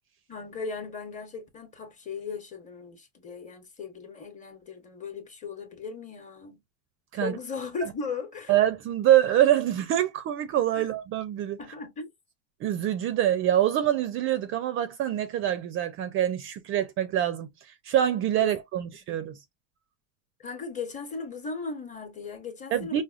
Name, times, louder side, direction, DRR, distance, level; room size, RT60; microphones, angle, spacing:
voice 1, 0.3-6.6 7.2-8.5 10.8-10.9 11.6-12.1 18.4-18.8 20.4-23.0, left 5 dB, 20° left, 1.0 m, -37 dB
voice 2, 8.5-11.6 12.6-19.3 22.7-23.0, right 11 dB, 35° right, 0.5 m, -25 dB
4.8 x 2.1 x 2.4 m
supercardioid pair, 145°, 37 cm